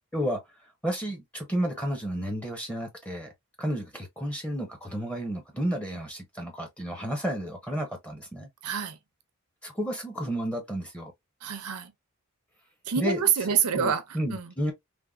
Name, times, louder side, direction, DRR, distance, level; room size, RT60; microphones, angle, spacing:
voice 1, 0.8-3.3 3.6-8.5 9.6-11.1 13.0-13.2 13.7-14.7, equal, 5° left, 0.7 m, -31 dB
voice 2, 8.6-9.0 11.4-11.9 12.8-14.0 14.3-14.5, right 8 dB, 85° right, 0.6 m, -27 dB
3.4 x 2.1 x 2.2 m
head